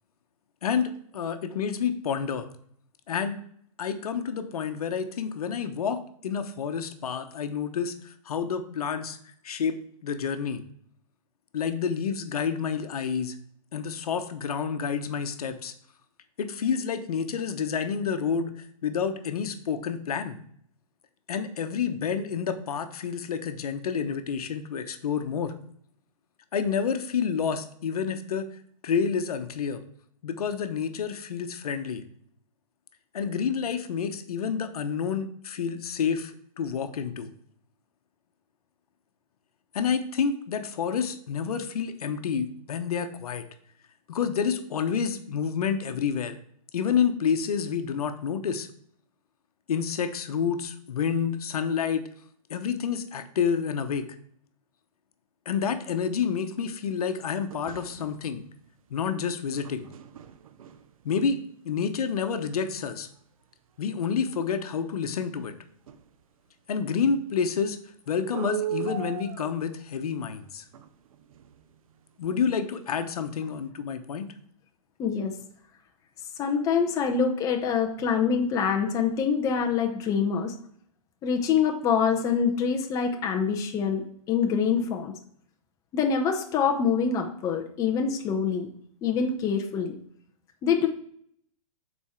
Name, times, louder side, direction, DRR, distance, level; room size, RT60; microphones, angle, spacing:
voice 1, 0.6-2.5 3.1-3.4 3.8-9.2 9.4-9.8 10.0-10.6 11.5-13.4 13.7-15.7 16.4-20.4 21.3-25.5 26.5-28.5 28.8-29.8 30.2-32.0 33.1-37.3 39.7-43.4 44.1-46.4 46.7-48.7 49.7-52.0 52.5-54.1 55.5-58.4 58.9-59.9 61.0-61.4 61.6-63.1 63.8-65.5 66.7-67.8 68.1-70.6 72.2-74.3, left 6 dB, 80° left, 9 dB, 0.9 m, -29 dB
sound 1, 57.5-58.4 59.5-61.2 63.2-63.3 63.9-64.0 64.3-64.4 64.6-64.7 65.9-66.2 68.3-69.9 70.7-72.0 72.5-72.6 72.9-73.1 73.4-73.7, right 12 dB, 65° right, 0.7 m, -38 dB
voice 2, 75.0-75.4 76.4-80.5 81.2-85.1 85.9-88.7 89.0-90.0 90.6-90.9, left 6 dB, 15° left, 4 dB, 0.6 m, -25 dB
7.1 x 4.2 x 4.4 m, 0.65 s
hypercardioid pair, 150°, 19 cm